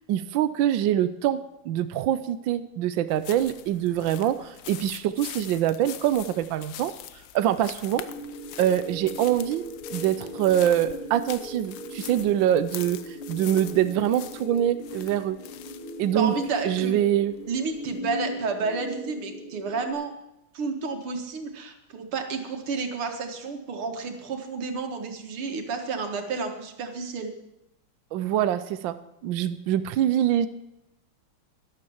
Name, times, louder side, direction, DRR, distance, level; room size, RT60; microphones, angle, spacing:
voice 1, 0.1-6.9 7.3-8.0 8.6-9.6 9.9-15.4 16.0-16.3 16.6-17.3 28.1-29.0 29.2-30.5, right 11 dB, 70° right, 12 dB, 1.3 m, -24 dB
sound 1, 3.1-18.0, left 12 dB, 70° left, 1.3 m, -44 dB
sound 2, 8.0-19.9, equal, 85° left, 2.8 m, -39 dB
voice 2, 16.1-17.0 17.5-20.1 20.5-27.3, right 4 dB, 90° right, 5 dB, 2.6 m, -31 dB
12.0 x 12.0 x 7.1 m, 0.88 s
omnidirectional pair, 2.3 m